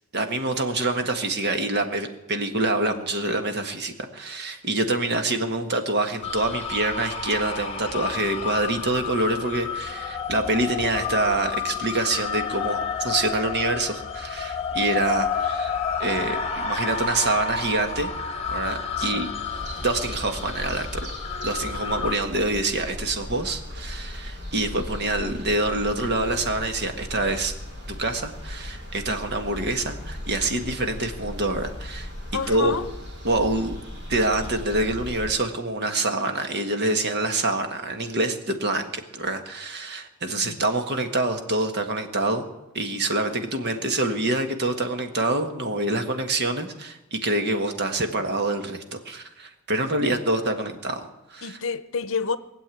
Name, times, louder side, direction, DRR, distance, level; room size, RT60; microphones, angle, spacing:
voice 1, 0.1-18.1 18.5-19.3 19.8-21.1 21.4-27.5 28.0-32.1 32.5-32.8 33.2-33.8 34.1-42.5 42.7-51.6, right 2 dB, 50° right, 1.6 m, -26 dB
sound 1, 6.2-22.1, left 6 dB, 30° left, 1.4 m, -30 dB
voice 2, 19.0-19.3 32.3-32.9 40.3-40.6 51.4-52.4, left 5 dB, 60° left, 0.8 m, -29 dB
sound 2, 19.5-35.3, left 1 dB, 85° right, 6.0 m, -37 dB
19.5 x 7.8 x 9.0 m
head